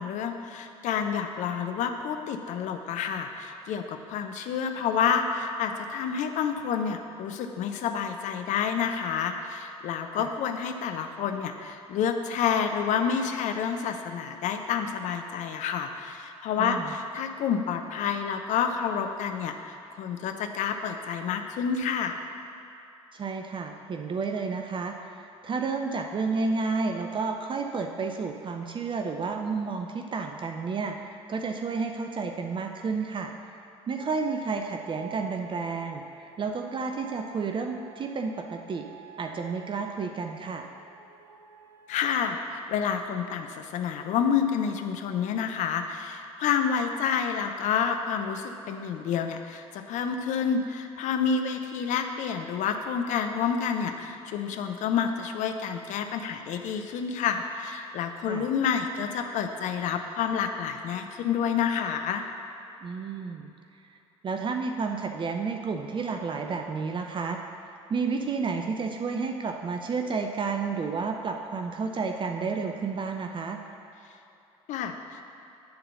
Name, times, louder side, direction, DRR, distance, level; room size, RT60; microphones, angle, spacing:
voice 1, 0.0-22.2 41.9-62.2 74.7-75.2, left 7 dB, 50° left, 6 dB, 0.7 m, -29 dB
voice 2, 16.6-16.9 23.1-25.1 25.4-33.3 33.9-38.9 39.2-40.7 58.2-58.5 62.8-63.5 63.8-64.0 64.2-67.4 67.9-73.6, right 4 dB, 30° right, 4 dB, 0.7 m, -31 dB
sound 1, 34.0-41.9, right 7 dB, 60° right, 1.7 m, -49 dB
10.5 x 3.9 x 6.6 m, 2.8 s
figure-of-eight pair, 60°, 16 cm